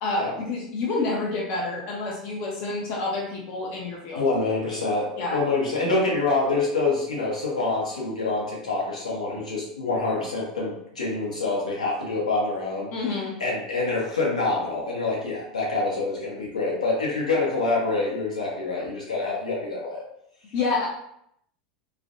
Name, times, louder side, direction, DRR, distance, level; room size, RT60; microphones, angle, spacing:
voice 1, 0.0-4.2 5.2-5.4 12.9-13.4 20.5-20.9, left 3 dB, 45° left, -3 dB, 0.5 m, -28 dB
voice 2, 4.1-12.9 13.4-20.0, left 3 dB, 80° left, -4 dB, 0.8 m, -26 dB
2.4 x 2.0 x 2.5 m, 0.75 s
figure-of-eight pair, 85°, 4 cm